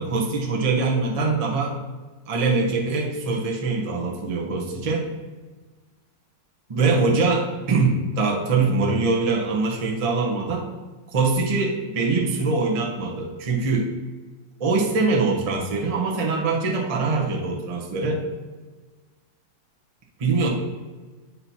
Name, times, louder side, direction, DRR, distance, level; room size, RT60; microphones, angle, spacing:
voice 1, 0.0-1.8 2.3-5.1 6.7-10.7 11.1-13.9 14.6-18.2 20.2-20.5, right 3 dB, 50° right, 0 dB, 0.4 m, -23 dB
7.8 x 2.7 x 5.7 m, 1.3 s
omnidirectional pair, 2.1 m